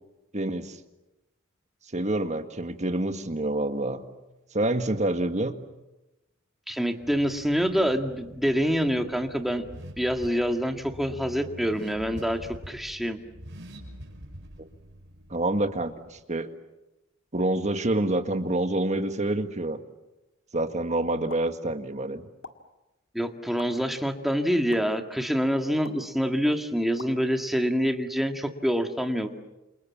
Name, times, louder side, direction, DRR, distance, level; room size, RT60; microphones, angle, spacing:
voice 1, 0.3-0.8 1.9-4.0 4.5-5.5 15.3-16.5 17.3-19.8 20.5-22.3, right 2 dB, 35° right, 8 dB, 1.7 m, -27 dB
voice 2, 6.7-9.7 10.0-12.4 12.7-13.2 23.1-29.3, equal, ahead, 5 dB, 2.0 m, -26 dB
Car / Accelerating revving vroom, 7.0-16.2, equal, 60° right, 6.1 m, -46 dB
sound 1, 21.3-21.5 22.4-22.5 23.6-23.7 24.7-24.8 25.8-26.0 27.0-27.1, left 4 dB, 75° left, 2.2 m, -42 dB
28.5 x 28.5 x 7.4 m, 1.0 s
head